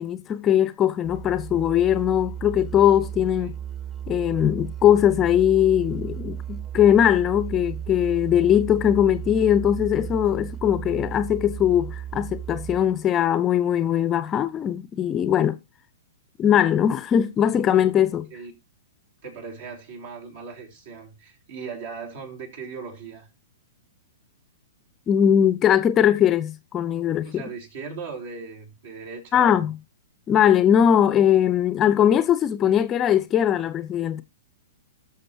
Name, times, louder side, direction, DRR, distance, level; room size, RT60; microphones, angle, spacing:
voice 1, 0.0-3.6 4.1-15.6 16.4-18.2 25.1-27.4 29.3-29.8 30.3-34.2, left 10 dB, 25° left, 0.7 m, -20 dB
Musical instrument, 1.0-13.1, right 10 dB, 10° right, 1.1 m, -35 dB
voice 2, 18.1-18.5 19.2-23.3 27.2-29.7, right 5 dB, 60° right, 3.9 m, -38 dB
19.5 x 6.7 x 2.8 m
figure-of-eight pair, 110°, 0 cm